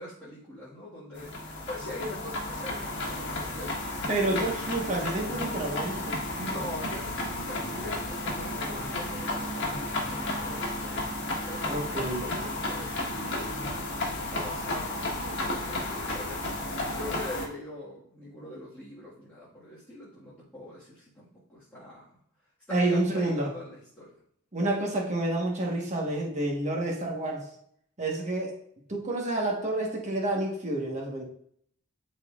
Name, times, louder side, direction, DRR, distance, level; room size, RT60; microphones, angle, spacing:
voice 1, 0.0-1.3 1.7-4.5 6.4-11.1 11.4-13.5 13.9-16.5 16.9-22.1 22.7-24.1, left 1 dB, 10° left, -11 dB, 1.8 m, -42 dB
sound 1, 1.1-17.5, left 2 dB, 55° left, 1.4 m, -33 dB
voice 2, 4.1-6.2 11.7-12.3 22.7-23.5 24.5-27.5 28.0-28.6 28.9-31.2, right 2 dB, 35° right, -1 dB, 1.3 m, -29 dB
12.0 x 4.1 x 2.5 m, 0.67 s
head